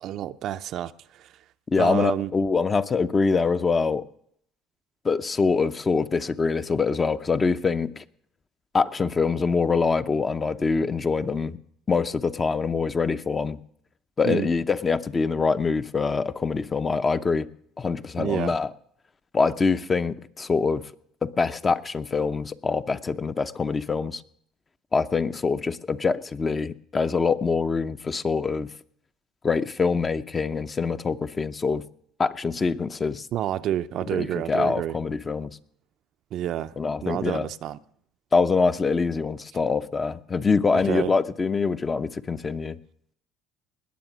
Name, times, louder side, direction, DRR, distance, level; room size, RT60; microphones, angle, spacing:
voice 1, 0.0-0.9 1.2-1.3 1.8-2.3 14.2-14.5 18.2-18.5 33.3-35.0 36.3-36.7 37.0-37.8 40.7-41.1, right 12 dB, 60° right, 0.5 m, -29 dB
voice 2, 1.7-4.1 5.0-8.0 8.7-11.6 11.9-13.6 14.2-17.5 17.8-18.7 19.3-20.8 21.2-24.2 24.9-28.7 29.4-31.8 32.2-33.3 34.1-35.6 36.8-37.5 38.3-42.8, left 4 dB, 30° left, 0.7 m, -24 dB
20.0 x 7.2 x 6.2 m
supercardioid pair, 85°, 0 cm